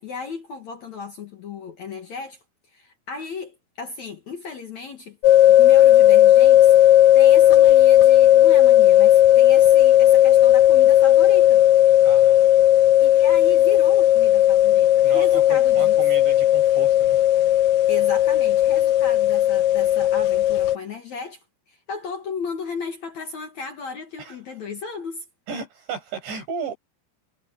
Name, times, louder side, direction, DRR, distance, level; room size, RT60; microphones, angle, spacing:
voice 1, 0.0-2.4 2.7-5.2 5.5-6.7 7.1-11.6 13.0-16.0 17.9-25.2, left 5 dB, 55° left, 2.2 m, -35 dB
sound 1, 5.2-20.8, left 12 dB, 80° left, 1.9 m, -15 dB
voice 2, 12.0-12.5 15.0-17.2 24.2-24.4 25.5-26.7, right 5 dB, 80° right, 10.0 m, -34 dB
omnidirectional pair, 5.1 m